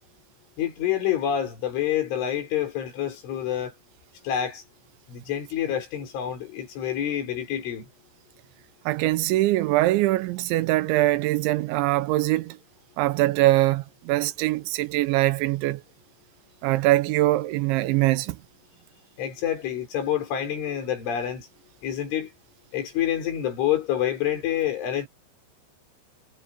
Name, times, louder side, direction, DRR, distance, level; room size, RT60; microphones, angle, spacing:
voice 1, 0.6-3.7 4.2-4.6 5.1-7.9 19.2-21.5 21.8-22.3 22.7-25.1, left 10 dB, 85° left, 7.5 m, -27 dB
voice 2, 8.9-12.6 13.0-15.8 16.6-18.4, right 17 dB, 85° right, 3.0 m, -22 dB
omnidirectional pair, 5.4 m